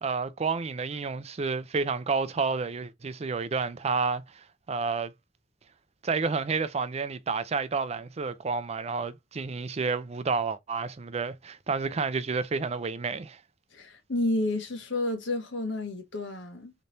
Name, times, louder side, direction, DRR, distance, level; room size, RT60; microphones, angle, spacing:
voice 1, 0.0-5.1 6.0-13.4, right 4 dB, 35° right, 0.5 m, -30 dB
voice 2, 13.7-16.7, left 2 dB, 85° left, 1.5 m, -30 dB
4.0 x 3.3 x 2.7 m
head